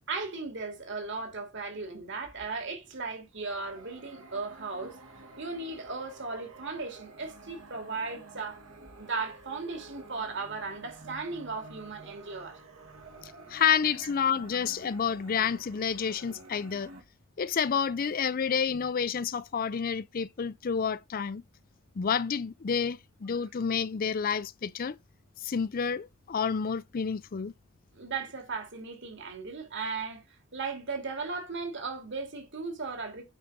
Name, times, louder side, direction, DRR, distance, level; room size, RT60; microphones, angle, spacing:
voice 1, 0.1-5.0 5.4-8.6 9.0-12.6 27.9-30.2 30.5-33.2, right 4 dB, 60° right, 2.9 m, -36 dB
sound 1, 3.4-17.0, right 3 dB, 80° right, 2.6 m, -50 dB
voice 2, 13.2-16.9 17.4-21.4 22.0-25.0 25.4-27.5, left 7 dB, 45° left, 0.4 m, -29 dB
8.9 x 4.8 x 5.2 m
head